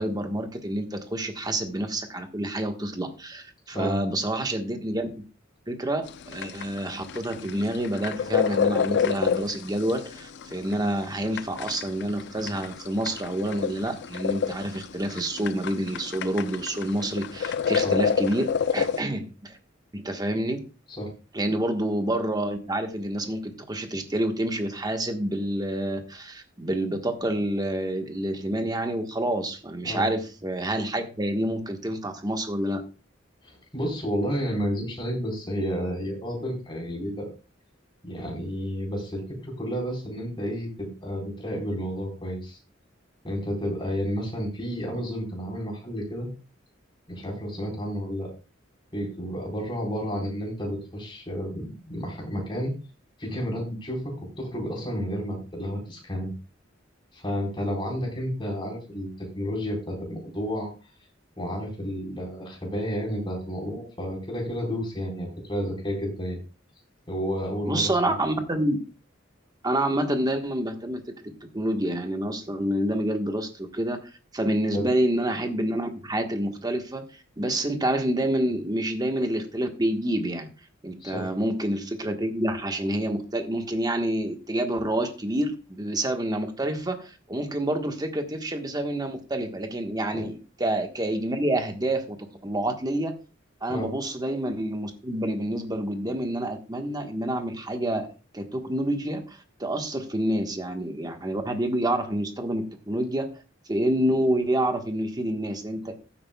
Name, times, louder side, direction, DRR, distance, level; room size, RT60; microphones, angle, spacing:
voice 1, 0.0-5.2 5.7-19.6 19.9-20.6 21.3-32.8 67.7-68.8 69.6-71.0 71.5-77.0 77.4-80.5 80.8-92.2 92.4-93.1 93.6-103.3 103.7-106.0, right 1 dB, 20° right, 5 dB, 1.3 m, -28 dB
sound 1, 6.1-19.0, left 7 dB, 60° left, 0.5 m, -28 dB
voice 2, 33.4-37.3 38.0-42.6 43.2-46.3 47.1-48.3 48.9-52.7 53.2-56.3 57.1-60.7 61.4-66.4 67.1-68.1 74.7-74.9 81.0-81.3 90.1-90.2 93.7-93.9, equal, 25° left, -1 dB, 4.2 m, -31 dB
15.0 x 8.7 x 2.3 m, 0.33 s
head